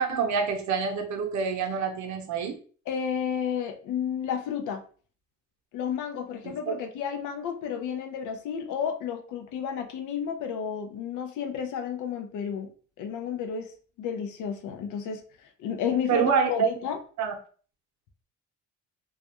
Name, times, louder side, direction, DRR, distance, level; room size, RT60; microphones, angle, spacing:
voice 1, 0.0-2.6 6.4-6.7 16.1-16.7 17.2-17.3, right 6 dB, 70° right, 4 dB, 0.6 m, -26 dB
voice 2, 2.9-4.8 5.7-13.7 14.0-15.2 15.6-17.0, left 7 dB, 80° left, 6 dB, 0.5 m, -31 dB
2.3 x 2.1 x 2.8 m, 0.42 s
cardioid pair, 90°, 30 cm